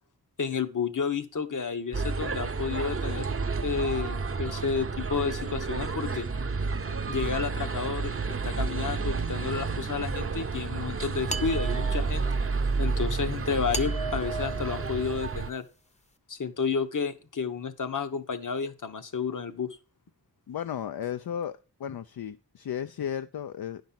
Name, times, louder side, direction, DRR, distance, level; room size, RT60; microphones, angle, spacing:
voice 1, 0.4-3.3 3.6-6.3 7.1-12.3 12.8-15.6 16.3-19.8, left 5 dB, 50° left, 9 dB, 1.0 m, -31 dB
sound 1, 1.9-15.5, right 4 dB, 35° right, 0.7 m, -30 dB
sound 2, 11.3-12.4 13.7-15.6, right 2 dB, 20° left, 0.8 m, -37 dB
voice 2, 20.5-23.8, left 9 dB, 70° left, 11 dB, 0.5 m, -34 dB
10.5 x 5.3 x 5.8 m, 0.34 s
wide cardioid pair, 75°, 38 cm